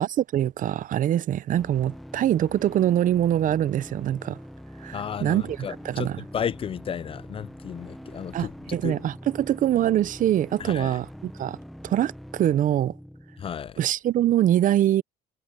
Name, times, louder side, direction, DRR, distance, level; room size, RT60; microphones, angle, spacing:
voice 1, 0.0-4.4 4.8-6.2 8.3-11.6 11.8-12.9 13.8-15.0, right 11 dB, 50° right, 0.6 m, -24 dB
sound 1, 1.5-13.5, equal, ahead, 0.8 m, -43 dB
voice 2, 4.9-6.1 6.3-9.0 10.6-10.9 13.4-13.8, left 8 dB, 35° left, 0.4 m, -33 dB
cardioid pair, 110°, 17 cm